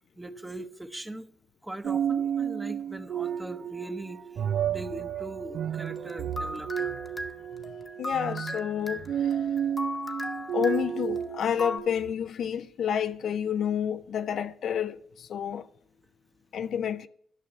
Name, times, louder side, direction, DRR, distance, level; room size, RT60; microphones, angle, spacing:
voice 1, 0.2-1.3 1.6-7.0, right 1 dB, 10° right, 0.9 m, -40 dB
sound 1, 1.8-12.1, right 9 dB, 65° right, 0.4 m, -32 dB
sound 2, 6.0-11.8, left 1 dB, 15° left, 1.0 m, -37 dB
voice 2, 8.0-9.0 10.5-15.0 15.3-15.6 16.5-17.1, left 8 dB, 65° left, 0.5 m, -29 dB
11.5 x 5.7 x 8.5 m
cardioid pair, 90°, 0 cm